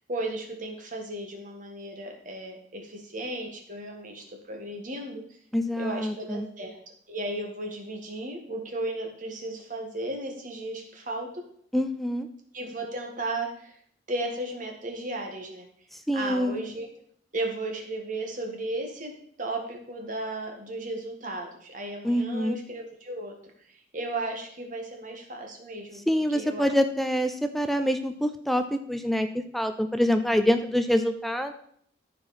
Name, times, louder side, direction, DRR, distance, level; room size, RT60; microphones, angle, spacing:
voice 1, 0.1-5.2 5.8-6.8 7.1-11.4 12.5-13.7 14.1-15.7 16.1-16.9 17.3-19.1 19.4-23.3 23.7-26.0 26.3-26.7, right 2 dB, 45° right, 2 dB, 1.7 m, -35 dB
voice 2, 5.5-6.5 11.7-12.3 16.1-16.6 22.0-22.6 26.1-29.3 29.5-31.5, equal, ahead, 8 dB, 0.4 m, -25 dB
13.5 x 4.8 x 4.2 m, 0.63 s
head